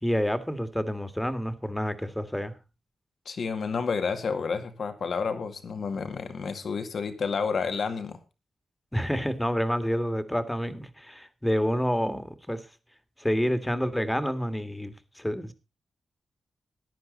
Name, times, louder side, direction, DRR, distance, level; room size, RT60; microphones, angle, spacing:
voice 1, 0.0-2.5 8.9-12.7 13.2-15.5, equal, 5° left, 10 dB, 1.9 m, -28 dB
voice 2, 3.3-8.2, left 5 dB, 70° left, 8 dB, 2.1 m, -30 dB
15.0 x 10.0 x 4.0 m, 0.28 s
cardioid pair, 55°, 0 cm